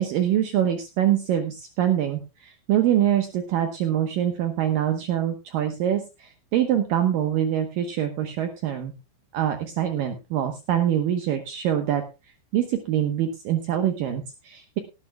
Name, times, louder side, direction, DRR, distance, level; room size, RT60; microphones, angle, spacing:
voice 1, 0.0-8.9 9.3-12.0 12.5-14.8, right 10 dB, 70° right, 7 dB, 2.5 m, -24 dB
18.5 x 12.0 x 2.2 m, 0.27 s
omnidirectional pair, 4.6 m